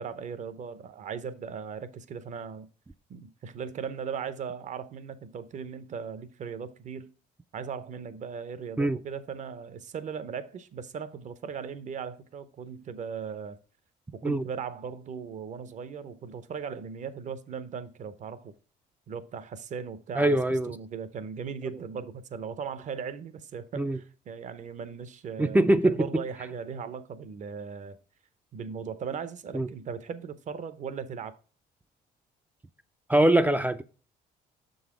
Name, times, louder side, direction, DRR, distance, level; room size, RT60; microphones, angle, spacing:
voice 1, 0.0-2.7 3.1-7.1 7.5-13.6 14.1-18.5 19.1-20.4 20.7-28.0 28.5-31.4, right 6 dB, 45° right, 0.7 m, -38 dB
voice 2, 20.2-20.7 23.8-24.0 25.4-26.2 29.5-29.7 33.1-33.8, right 1 dB, 10° right, 0.3 m, -23 dB
6.5 x 4.0 x 4.8 m
cardioid pair, 110°, 17 cm